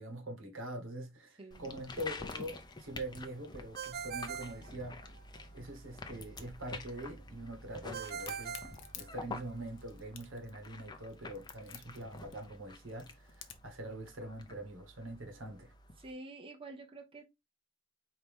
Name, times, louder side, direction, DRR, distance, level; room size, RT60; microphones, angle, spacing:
voice 1, 0.0-5.0 5.5-8.6 8.9-15.7, right 1 dB, 85° right, 1.3 m, -44 dB
voice 2, 1.4-1.7 16.0-17.2, right 2 dB, 30° right, 0.9 m, -48 dB
sound 1, 1.5-16.1, left 3 dB, 20° left, 0.6 m, -49 dB
Ringtone, 3.7-5.4 7.9-9.6, right 7 dB, 50° right, 0.4 m, -43 dB
Crack, 8.1-13.8, left 11 dB, 70° left, 0.7 m, -51 dB
4.7 x 2.9 x 3.5 m
head